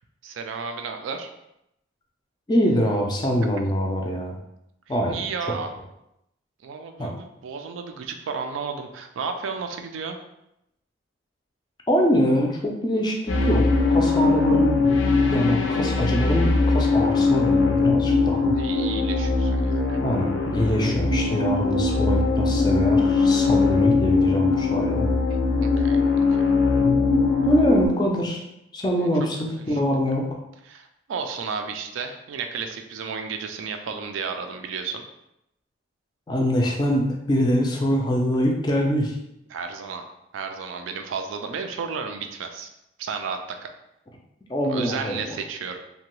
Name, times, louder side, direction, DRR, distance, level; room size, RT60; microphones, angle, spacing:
voice 1, 0.2-1.3 5.1-5.7 6.6-10.2 18.6-20.0 25.6-26.0 26.4-26.5 30.7-35.0 39.5-40.0 40.3-42.7 43.0-43.4 44.7-45.8, right 5 dB, 90° right, 5 dB, 0.4 m, -32 dB
voice 2, 2.5-4.4 4.9-5.3 7.0-7.2 11.9-14.9 15.3-18.5 20.0-25.1 27.4-28.4 28.7-30.4 36.3-39.2 44.5-45.4, equal, 20° left, 0 dB, 0.3 m, -24 dB
sound 1, 13.3-27.9, left 3 dB, 90° left, 0.5 m, -21 dB
2.7 x 2.2 x 3.0 m, 0.84 s
head